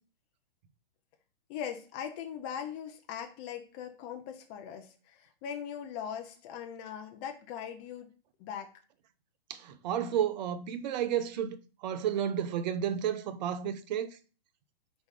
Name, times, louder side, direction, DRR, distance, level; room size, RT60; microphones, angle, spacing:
voice 1, 1.5-8.1 8.4-8.7, left 8 dB, 30° left, 0.8 m, -40 dB
voice 2, 9.5-11.6 11.8-14.2, right 9 dB, 45° right, 0.7 m, -31 dB
4.8 x 4.2 x 4.8 m
hypercardioid pair, 140°, 31 cm